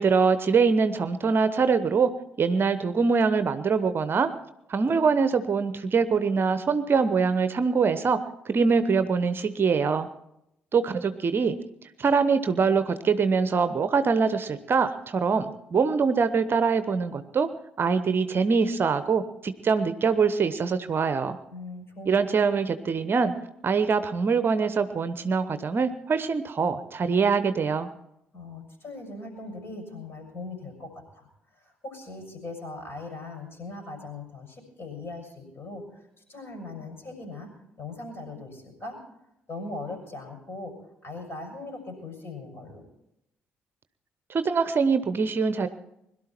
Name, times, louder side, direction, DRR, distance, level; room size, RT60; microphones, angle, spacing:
voice 1, 0.0-2.1 2.4-4.3 4.7-8.2 8.5-10.1 10.7-11.6 12.0-17.5 17.8-21.4 22.1-23.3 23.6-27.9 44.3-45.7, right 5 dB, 40° right, 11 dB, 0.9 m, -23 dB
voice 2, 21.5-22.2 28.3-37.5 37.8-39.0 39.5-40.7 41.0-42.8, left 2 dB, 40° left, 4 dB, 6.3 m, -40 dB
22.0 x 12.0 x 4.4 m, 0.81 s
figure-of-eight pair, 45°, 6 cm